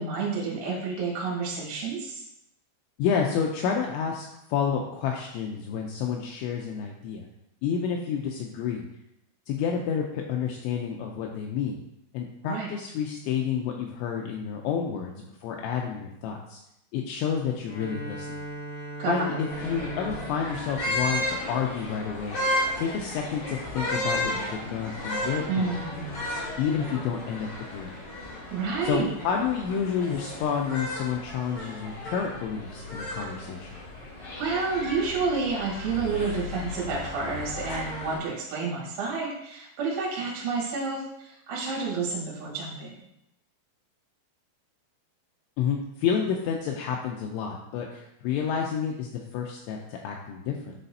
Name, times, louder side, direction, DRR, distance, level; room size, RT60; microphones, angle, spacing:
voice 1, 0.0-2.2 12.4-12.7 19.0-19.4 25.5-26.3 28.5-29.1 34.2-42.9, right 4 dB, 70° right, -6 dB, 4.1 m, -30 dB
voice 2, 3.0-7.3 7.6-8.9 9.5-11.8 12.1-16.6 16.9-18.4 19.1-22.4 22.8-26.1 26.6-28.0 28.8-33.7 45.6-50.8, left 7 dB, 90° left, 1 dB, 2.6 m, -30 dB
Bowed string instrument, 17.6-21.9, right 1 dB, 60° left, 2.4 m, -40 dB
sound 1, 19.5-38.2, left 1 dB, 40° left, 3.3 m, -34 dB
11.0 x 4.1 x 2.7 m, 0.82 s
omnidirectional pair, 5.8 m